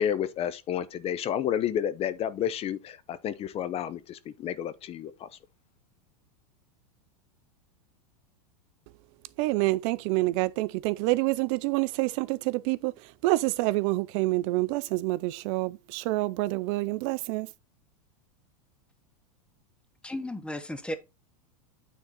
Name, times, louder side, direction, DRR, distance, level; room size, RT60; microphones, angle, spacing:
voice 1, 0.0-5.3, left 9 dB, 30° left, 0.6 m, -30 dB
voice 2, 9.4-12.1 12.7-12.8 13.2-15.2 15.5-15.7 16.1-17.4, right 20 dB, 50° right, 0.4 m, -26 dB
voice 3, 20.0-21.0, left 1 dB, 5° left, 0.9 m, -34 dB
9.1 x 3.7 x 4.1 m
hypercardioid pair, 120°, 20 cm